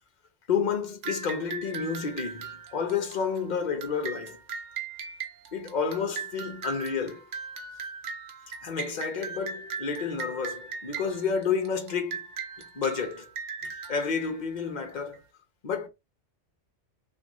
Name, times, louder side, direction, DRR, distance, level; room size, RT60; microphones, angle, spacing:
voice 1, 0.5-4.4 5.5-7.2 8.6-12.3 12.7-13.3 13.9-15.2 15.6-15.9, left 6 dB, 50° left, 0.7 m, -30 dB
sound 1, 1.0-15.2, right 5 dB, 90° right, 1.0 m, -39 dB
2.5 x 2.5 x 2.9 m
omnidirectional pair, 1.2 m